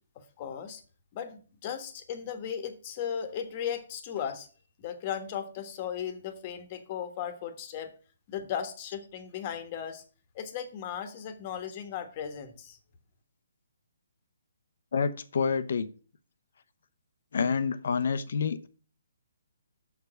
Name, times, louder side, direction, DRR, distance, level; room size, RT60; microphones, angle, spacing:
voice 1, 0.1-0.8 1.1-4.5 4.8-7.9 8.3-10.0 10.3-12.8, left 8 dB, 35° left, 1.3 m, -36 dB
voice 2, 14.9-15.9 17.3-18.7, left 5 dB, 65° left, 0.8 m, -28 dB
6.7 x 4.8 x 6.4 m
hypercardioid pair, 145°, 0 cm